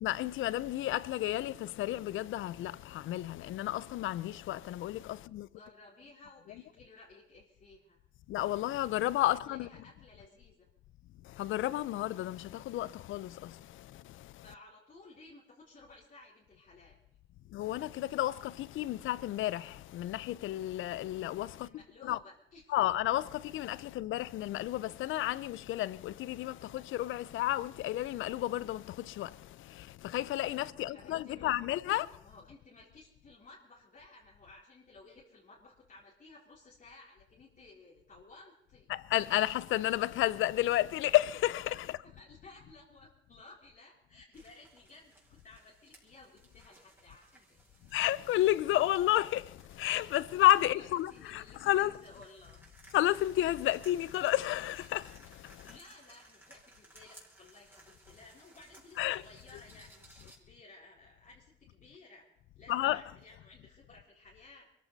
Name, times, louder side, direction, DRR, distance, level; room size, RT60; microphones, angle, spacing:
voice 1, 0.0-5.5 8.3-9.7 11.2-14.4 17.5-21.7 22.0-22.2 22.7-32.2 38.9-42.0 47.9-52.0 52.9-55.7 59.0-59.2 62.7-63.0, left 14 dB, 80° left, 0.6 m, -31 dB
voice 2, 5.4-8.0 9.3-10.7 14.4-17.0 21.5-22.9 23.8-24.0 30.7-38.9 41.8-45.1 45.4-47.6 50.6-52.7 55.6-62.3 62.6-64.7, left 3 dB, 40° left, 4.1 m, -56 dB
sound 1, 44.3-60.4, right 1 dB, 10° right, 5.1 m, -60 dB
22.5 x 14.5 x 4.1 m
cardioid pair, 90°, 20 cm